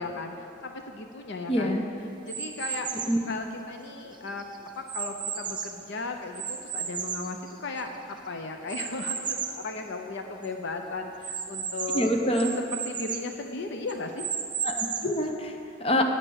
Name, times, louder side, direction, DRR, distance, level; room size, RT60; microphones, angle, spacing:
voice 1, 0.0-1.8 2.2-2.9 3.3-4.5 4.8-7.9 8.3-12.1 12.4-14.3, left 3 dB, 65° left, 5 dB, 0.7 m, -36 dB
voice 2, 1.5-1.9 3.1-3.3 11.9-12.5 14.6-16.0, equal, 30° left, 3 dB, 0.8 m, -26 dB
sound 1, 2.3-3.2 3.9-5.9 6.4-8.0 8.7-9.7 10.1-10.2 10.4-10.5 11.2-13.3 13.9-15.2, right 7 dB, 25° right, 0.6 m, -34 dB
9.8 x 8.9 x 6.4 m, 2.8 s
head